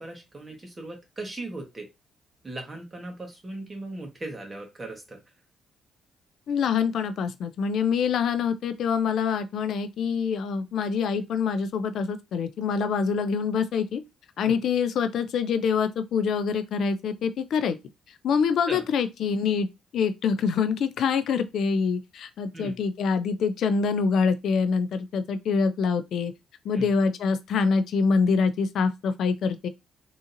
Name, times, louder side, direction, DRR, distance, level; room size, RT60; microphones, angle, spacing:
voice 1, 0.0-1.9 2.4-5.2 14.4-14.5 18.7-18.8 22.5-22.7 26.7-26.9, right 2 dB, 25° right, 1.3 m, -38 dB
voice 2, 6.5-14.0 14.4-17.8 18.2-19.7 19.9-26.3 26.6-29.7, left 5 dB, 70° left, 0.4 m, -25 dB
3.7 x 2.8 x 2.5 m
cardioid pair, 90°, 0 cm